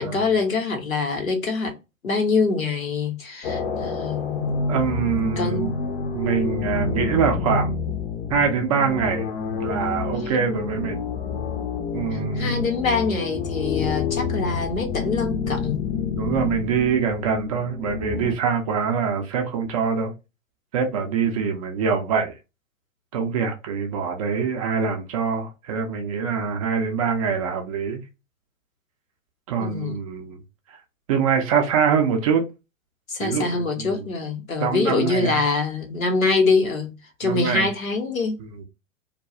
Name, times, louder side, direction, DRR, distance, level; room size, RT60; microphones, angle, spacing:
voice 1, 0.0-1.7 2.0-4.5 5.4-5.7 12.3-15.9 29.6-29.9 33.1-36.9 37.2-38.4, left 4 dB, 85° left, 1.0 m, -24 dB
sound 1, 3.4-18.4, left 5 dB, 50° left, 0.7 m, -28 dB
voice 2, 4.7-5.7 6.1-7.7 8.3-9.3 9.6-11.0 11.9-12.5 13.7-14.0 16.2-20.1 20.7-22.3 23.1-28.0 29.5-30.4 30.7-30.8 31.1-32.4 33.2-34.1 34.6-35.4 37.2-37.7 38.6-38.7, right 6 dB, 30° right, 0.4 m, -24 dB
2.3 x 2.2 x 2.6 m
figure-of-eight pair, 110°, 40 cm